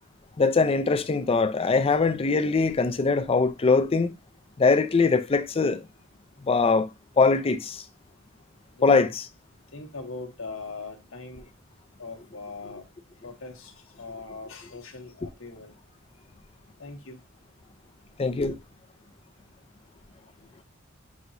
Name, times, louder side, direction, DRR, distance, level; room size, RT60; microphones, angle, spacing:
voice 1, 0.4-4.1 4.6-5.9 6.5-6.9 7.2-7.8 8.8-9.2 18.2-18.6, left 4 dB, 30° left, 0.4 m, -22 dB
voice 2, 8.7-9.1 9.7-11.5 12.0-12.8 13.2-15.8 16.8-17.2, left 3 dB, 65° left, 1.1 m, -40 dB
6.1 x 2.9 x 2.6 m
head